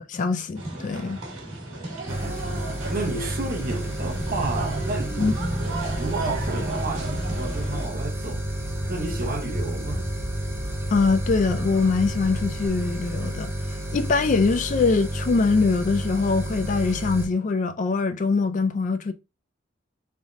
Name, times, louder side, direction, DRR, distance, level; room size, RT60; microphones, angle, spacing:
voice 1, 0.1-1.2 5.2-5.3 10.9-13.5 13.9-19.1, left 4 dB, 40° left, 0.3 m, -23 dB
sound 1, 0.6-7.9, right 1 dB, 85° right, 1.4 m, -32 dB
sound 2, 2.1-17.3, equal, 15° right, 0.8 m, -31 dB
voice 2, 2.1-5.4 6.0-8.4 8.9-10.1, right 3 dB, 45° right, 0.9 m, -32 dB
sound 3, 4.9-12.7, equal, 20° left, 2.3 m, -39 dB
3.6 x 3.4 x 2.5 m
head